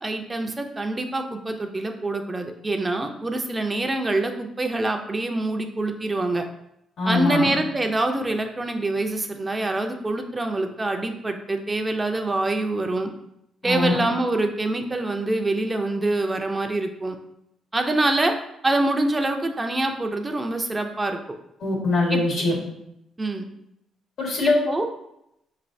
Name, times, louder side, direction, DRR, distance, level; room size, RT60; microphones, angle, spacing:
voice 1, 0.0-6.4 7.1-13.1 13.6-17.2 17.7-18.3 18.6-21.2 22.1-22.2 23.2-23.5 24.4-24.9, right 2 dB, 20° right, 4 dB, 0.4 m, -25 dB
voice 2, 7.0-7.5 13.6-13.9 21.6-22.5 24.2-24.6, left 2 dB, 70° left, -1 dB, 1.5 m, -22 dB
5.3 x 3.2 x 2.6 m, 0.81 s
cardioid pair, 90°, 0 cm